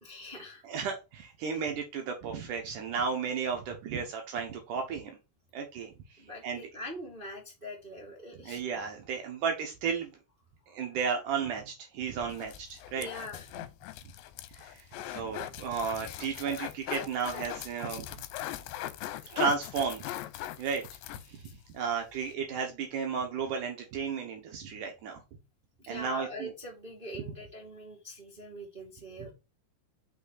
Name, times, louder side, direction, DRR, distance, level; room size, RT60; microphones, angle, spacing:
voice 1, 0.0-0.8 6.2-8.6 13.0-13.5 25.8-29.3, left 1 dB, 35° right, -2 dB, 0.8 m, -43 dB
voice 2, 0.6-5.1 5.5-5.9 6.4-6.6 8.5-10.1 10.7-13.1 14.5-18.1 19.3-20.1 20.6-20.8 21.3-21.4 21.7-25.2 25.9-26.5 29.2-29.3, right 6 dB, 80° right, 3 dB, 1.8 m, -33 dB
sound 1, 12.2-21.6 21.9-22.0 22.2-22.3, left 13 dB, 85° left, 2.9 m, -40 dB
6.3 x 5.4 x 4.0 m, 0.27 s
omnidirectional pair, 5.3 m